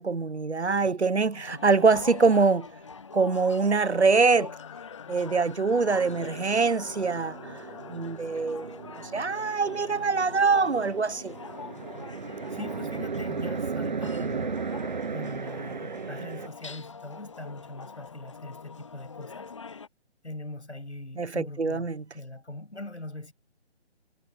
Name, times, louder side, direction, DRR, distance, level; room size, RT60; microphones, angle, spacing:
voice 1, 0.0-2.7 3.1-4.5 5.1-11.3 21.2-22.0, right 4 dB, 75° right, 1.2 m, -24 dB
sound 1, 1.3-19.9, left 5 dB, 25° left, 0.7 m, -44 dB
sound 2, 4.5-10.3, left 18 dB, 10° left, 2.8 m, -52 dB
sound 3, 5.7-16.5, right 5 dB, 45° right, 0.5 m, -36 dB
voice 2, 12.5-14.6 15.1-19.5 20.2-23.3, left 2 dB, 80° left, 7.8 m, -41 dB
figure-of-eight pair, 150°, 34 cm